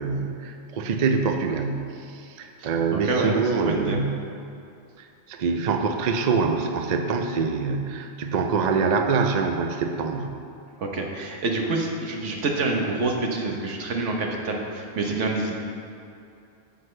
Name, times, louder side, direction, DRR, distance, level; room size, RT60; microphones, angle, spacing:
voice 1, 0.0-4.3 5.0-10.4, right 5 dB, 50° right, 5 dB, 0.5 m, -25 dB
voice 2, 2.6-4.0 10.8-15.6, right 3 dB, 75° right, 1 dB, 1.3 m, -27 dB
9.4 x 8.0 x 3.2 m, 2.6 s
omnidirectional pair, 1.3 m